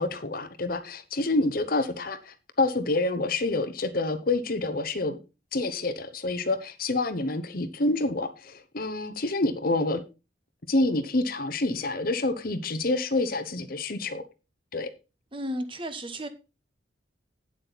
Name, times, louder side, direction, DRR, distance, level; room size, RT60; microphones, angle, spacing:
voice 1, 0.0-5.2 5.5-10.0 10.7-14.2 14.7-14.9, left 2 dB, 50° left, 0.9 m, -27 dB
voice 2, 15.3-16.3, equal, 25° right, 1.1 m, -33 dB
8.8 x 7.8 x 4.1 m
head